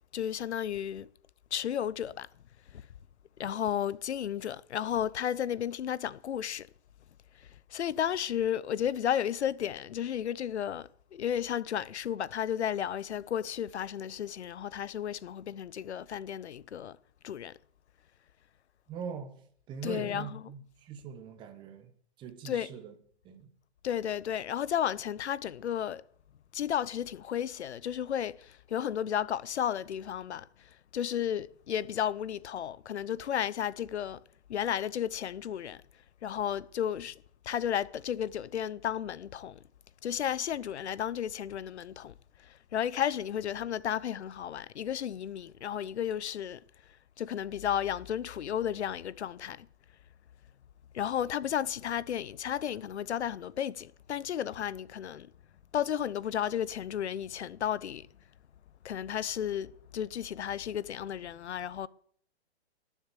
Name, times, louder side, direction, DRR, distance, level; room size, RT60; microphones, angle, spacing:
voice 1, 0.1-1.1 1.5-2.3 2.7-2.9 3.4-6.7 7.3-17.0 17.2-17.6 19.8-20.4 22.4-22.7 23.8-26.0 26.5-34.2 34.5-35.8 36.2-39.6 40.0-46.6 47.2-49.7 50.9-55.3 55.7-58.1 58.8-61.9, left 9 dB, 80° left, 0.8 m, -33 dB
voice 2, 18.9-19.3 19.7-21.9 22.2-22.9 23.2-23.5, right 6 dB, 15° right, 1.1 m, -42 dB
19.0 x 7.3 x 8.2 m
hypercardioid pair, 160°, 33 cm